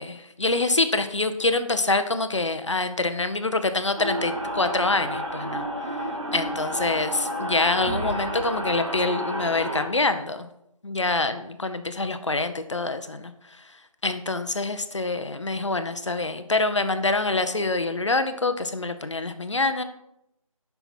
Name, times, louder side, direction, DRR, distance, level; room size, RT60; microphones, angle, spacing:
voice 1, 0.0-5.7 6.3-10.5 10.8-13.3 14.0-19.8, left 3 dB, 55° left, 9 dB, 0.7 m, -25 dB
sound 1, 4.0-9.9, equal, 60° right, 1.8 m, -30 dB
7.1 x 5.7 x 4.3 m, 0.81 s
figure-of-eight pair, 175°, 18 cm